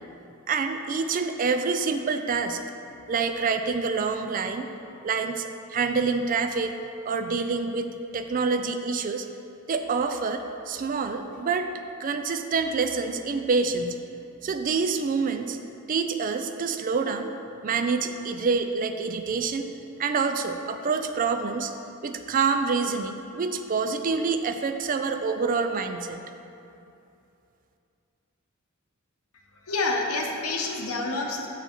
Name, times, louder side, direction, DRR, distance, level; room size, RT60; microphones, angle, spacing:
voice 1, 0.5-2.6 3.1-4.7 5.0-6.8 7.0-9.3 9.7-11.7 12.0-14.0 14.4-15.6 15.9-17.3 17.6-19.6 20.0-21.7 22.0-26.2, right 4 dB, 40° right, 7 dB, 0.4 m, -27 dB
voice 2, 29.7-31.5, left 3 dB, 85° left, 0 dB, 1.0 m, -28 dB
6.9 x 6.5 x 4.4 m, 2.7 s
head